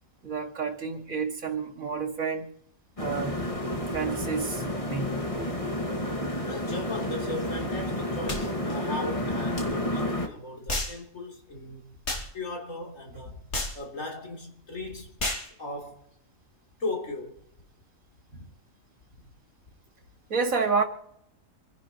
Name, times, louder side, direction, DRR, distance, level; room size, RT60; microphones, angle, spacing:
voice 1, 0.2-2.5 3.0-3.4 3.9-5.2 20.3-20.8, right 5 dB, 85° right, 2.6 m, -29 dB
sound 1, 3.0-10.3, left 1 dB, 25° left, 2.0 m, -30 dB
voice 2, 6.5-12.0 12.3-13.4 13.7-15.1 15.6-16.1 16.8-17.4 18.3-18.5 19.2-19.3, left 2 dB, 70° left, 3.8 m, -37 dB
sound 2, 8.3-8.5 9.5-9.7 10.7-11.0 12.0-12.3 13.5-13.8 15.2-15.5, left 1 dB, 55° left, 2.8 m, -30 dB
27.0 x 10.5 x 3.1 m
omnidirectional pair, 1.4 m